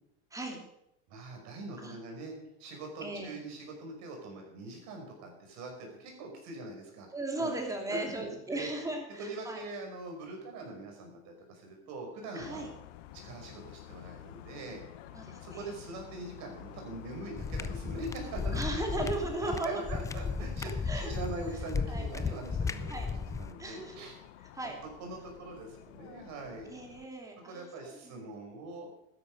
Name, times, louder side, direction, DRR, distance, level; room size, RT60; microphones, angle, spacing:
voice 1, 1.1-2.3 2.6-7.1 7.4-7.5 7.9-8.7 9.2-12.7 13.1-15.1 15.4-24.1 25.0-26.7 27.4-28.9, right 2 dB, 50° right, 2 dB, 5.7 m, -43 dB
voice 2, 3.0-3.3 7.1-9.6 12.3-12.7 15.1-15.7 18.5-20.0 20.6-21.1 21.9-22.1 22.9-23.1 23.6-24.1 24.5-24.8 26.7-28.2, right 2 dB, 10° right, 1 dB, 2.9 m, -37 dB
sound 1, 12.4-27.1, left 13 dB, 85° left, 1.1 m, -50 dB
sound 2, 17.4-23.5, left 5 dB, 10° left, 0.4 m, -35 dB
12.5 x 10.5 x 6.7 m, 0.82 s
supercardioid pair, 145°, 35 cm